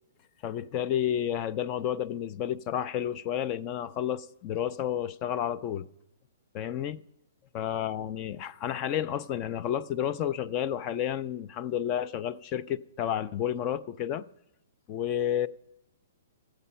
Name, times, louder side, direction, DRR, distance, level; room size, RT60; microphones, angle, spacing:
voice 1, 0.4-5.9 6.5-7.0 7.5-14.3 14.9-15.5, left 10 dB, 25° left, 0.3 m, -31 dB
15.0 x 7.8 x 5.6 m
hypercardioid pair, 165°, 0 cm